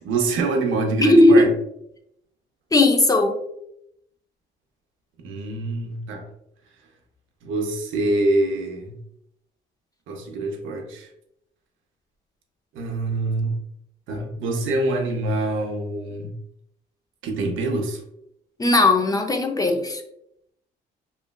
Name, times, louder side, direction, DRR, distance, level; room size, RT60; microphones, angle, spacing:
voice 1, 0.0-1.5 5.2-6.3 7.4-9.0 10.1-11.1 12.7-13.6 14.1-16.3 17.2-18.0, right 2 dB, 80° right, 3 dB, 0.6 m, -25 dB
voice 2, 1.0-1.5 2.7-3.4 18.6-20.0, left 2 dB, 20° left, 4 dB, 0.4 m, -17 dB
3.1 x 2.2 x 2.2 m, 0.77 s
cardioid pair, 90°, 20 cm